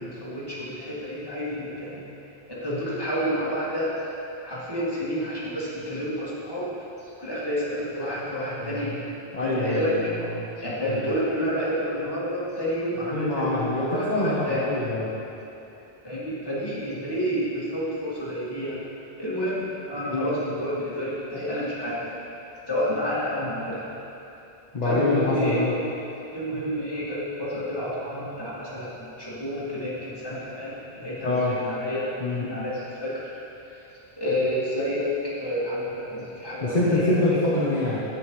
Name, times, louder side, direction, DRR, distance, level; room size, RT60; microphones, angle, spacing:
voice 1, 0.0-2.0 2.5-4.0 4.4-6.7 7.0-9.0 9.4-10.0 10.6-14.6 16.0-18.8 19.2-22.1 22.7-23.8 24.8-25.7 26.3-32.1 32.4-33.3 33.7-33.8 34.2-35.1 35.4-37.1, equal, 25° left, -10 dB, 2.3 m, -29 dB
voice 2, 9.3-10.4 10.8-11.0 13.1-15.1 20.1-20.3 24.7-25.7 31.2-31.6 32.2-32.4 36.6-38.0, left 2 dB, 45° left, -6 dB, 1.1 m, -25 dB
10.5 x 8.8 x 3.2 m, 2.9 s
omnidirectional pair, 1.0 m